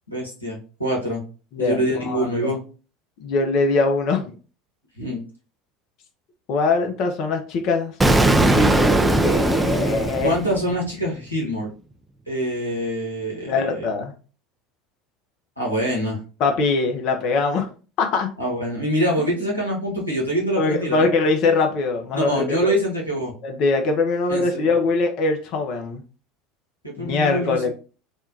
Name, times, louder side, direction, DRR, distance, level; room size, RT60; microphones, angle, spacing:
voice 1, 0.1-1.2 1.6-2.6 5.0-5.2 10.2-11.7 12.3-13.9 15.6-16.2 18.4-21.1 22.1-23.3 24.3-24.7 26.8-27.7, equal, 90° left, -2 dB, 1.1 m, -25 dB
voice 2, 1.5-2.5 3.2-4.3 6.5-7.9 8.5-10.3 13.5-14.1 16.4-17.7 18.0-18.3 20.6-22.7 23.4-26.0 27.0-27.7, left 3 dB, 50° left, 4 dB, 0.6 m, -22 dB
Explosion, 8.0-10.9, right 2 dB, 10° right, 0.3 m, -19 dB
3.5 x 2.2 x 2.6 m, 0.36 s
figure-of-eight pair, 70°, 0 cm